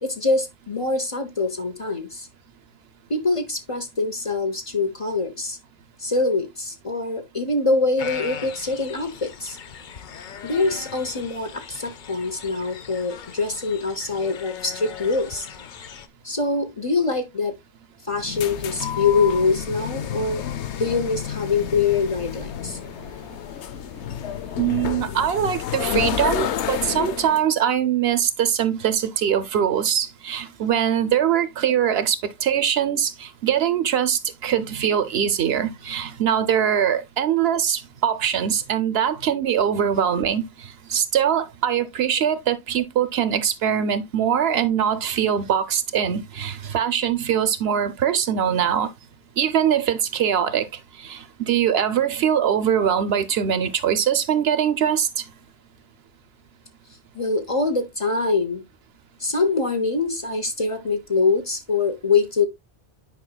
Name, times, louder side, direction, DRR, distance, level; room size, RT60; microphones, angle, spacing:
voice 1, 0.0-2.3 3.1-5.6 6.0-9.6 10.4-15.5 16.2-17.5 18.1-20.4 20.8-22.8 57.1-58.6 59.2-62.5, left 4 dB, 30° left, 0.9 m, -24 dB
sound 1, 8.0-16.1, left 8 dB, 55° left, 0.7 m, -39 dB
sound 2, 18.1-27.4, left 9 dB, 90° left, 1.0 m, -30 dB
voice 2, 24.6-48.9 49.4-50.7 51.0-55.2, right 9 dB, 70° right, 0.9 m, -22 dB
9.4 x 5.0 x 2.2 m
omnidirectional pair, 1.1 m